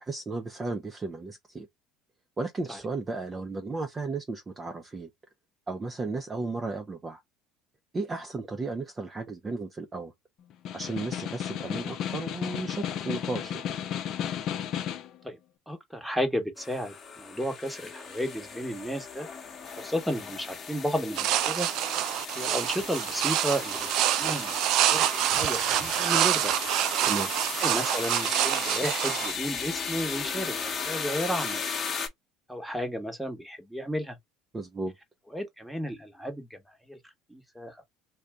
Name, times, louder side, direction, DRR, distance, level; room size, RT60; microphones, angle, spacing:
voice 1, 0.0-1.7 2.4-5.1 5.7-7.2 7.9-10.1 10.7-13.7 27.0-27.3 34.5-34.9, right 3 dB, 25° right, 0.6 m, -34 dB
Snare drum, 10.5-15.2, left 9 dB, 55° left, 0.6 m, -33 dB
voice 2, 15.7-19.3 19.8-21.7 22.3-23.9 24.2-26.5 27.6-31.8 32.5-34.2 35.3-36.6 36.8-37.0 37.3-37.8, equal, ahead, 1.1 m, -33 dB
sound 1, 16.6-32.1, left 5 dB, 35° left, 1.0 m, -36 dB
sound 2, 21.1-29.3, right 12 dB, 60° right, 0.3 m, -27 dB
2.5 x 2.3 x 3.4 m
hypercardioid pair, 75°, 0 cm